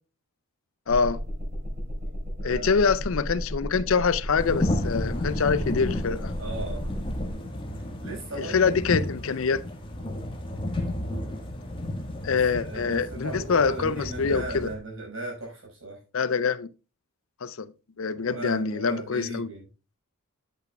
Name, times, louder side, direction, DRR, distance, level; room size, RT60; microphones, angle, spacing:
voice 1, 0.9-1.2 2.4-6.3 8.4-9.6 12.2-14.7 16.1-16.7 17.4-17.7 18.0-19.5, left 5 dB, 65° left, 0.5 m, -25 dB
sound 1, 0.9-7.3, equal, 40° right, 4.8 m, -34 dB
voice 2, 2.4-2.9 6.4-6.9 8.0-8.8 12.3-16.0 18.1-19.6, right 2 dB, 60° right, 5.6 m, -37 dB
sound 2, 4.4-14.7, left 1 dB, 20° left, 1.5 m, -32 dB
9.9 x 8.3 x 2.3 m
head